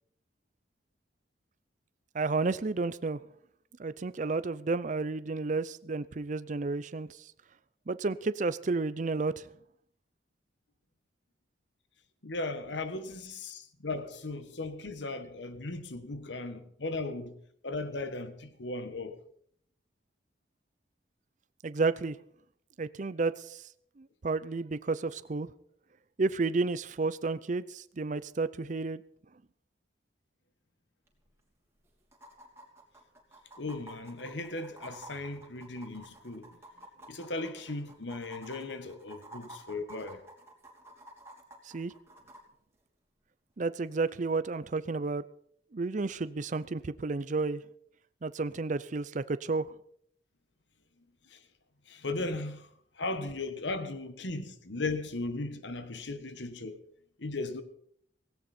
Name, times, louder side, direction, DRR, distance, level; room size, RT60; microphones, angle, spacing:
voice 1, 2.1-3.2 3.8-7.3 7.9-9.5 21.6-22.2 22.8-23.7 24.0-25.5 26.2-29.0 41.6-41.9 43.6-45.2 45.7-47.6 48.2-49.7, right 3 dB, 40° right, 0.5 m, -31 dB
voice 2, 12.2-17.4 17.6-19.2 33.6-36.5 37.1-40.2 51.3-51.4 51.9-52.7 53.0-56.8 57.2-57.6, left 2 dB, 70° left, 1.3 m, -37 dB
sound 1, 31.1-31.2 31.4-31.5 32.1-42.4 44.1-44.2, right 1 dB, 15° right, 2.9 m, -50 dB
17.0 x 17.0 x 4.3 m
head